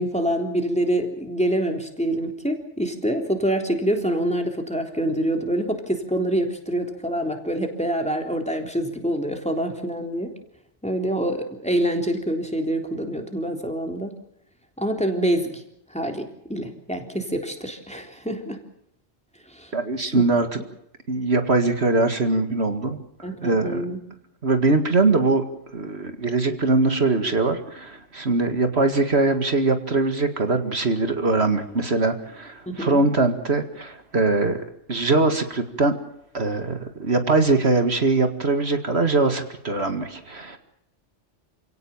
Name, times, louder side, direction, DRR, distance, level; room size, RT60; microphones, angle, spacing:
voice 1, 0.0-10.3 10.8-14.1 14.8-15.6 15.9-18.6 19.5-19.7 20.0-20.3 23.2-24.0 32.7-33.0, right 1 dB, 5° left, 4 dB, 3.6 m, -26 dB
voice 2, 19.7-20.6 21.1-23.0 23.4-23.9 24.4-25.4 25.7-34.6 34.9-35.9 36.3-40.6, right 3 dB, 65° right, 7 dB, 2.4 m, -22 dB
29.0 x 17.5 x 7.3 m, 0.78 s
omnidirectional pair, 1.2 m